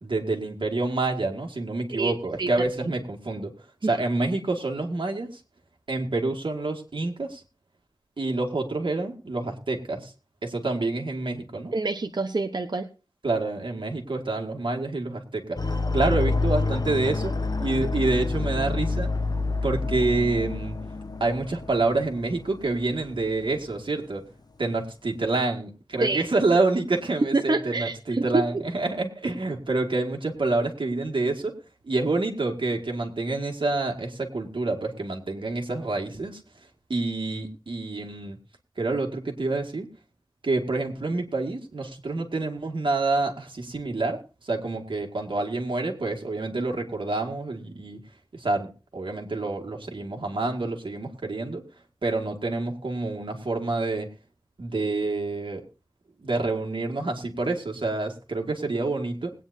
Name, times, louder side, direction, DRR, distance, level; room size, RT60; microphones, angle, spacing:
voice 1, 0.0-3.5 3.8-5.3 5.9-7.4 8.2-10.1 10.4-11.7 13.2-17.3 17.6-19.1 19.6-20.8 21.2-24.2 24.6-31.5 31.8-36.4 36.9-38.4 38.8-39.9 40.4-48.0 48.3-51.6 52.0-54.1 54.6-55.6 56.2-59.3, right 3 dB, 85° right, 1 dB, 2.1 m, -27 dB
voice 2, 1.9-2.5 3.8-4.0 11.7-12.9 26.0-26.2 27.3-28.6, right 3 dB, 60° right, 6 dB, 0.9 m, -27 dB
sound 1, 15.6-23.9 24.2-24.3, left 3 dB, 50° left, 1.2 m, -28 dB
21.0 x 9.3 x 2.7 m, 0.33 s
wide cardioid pair, 55°, 8 cm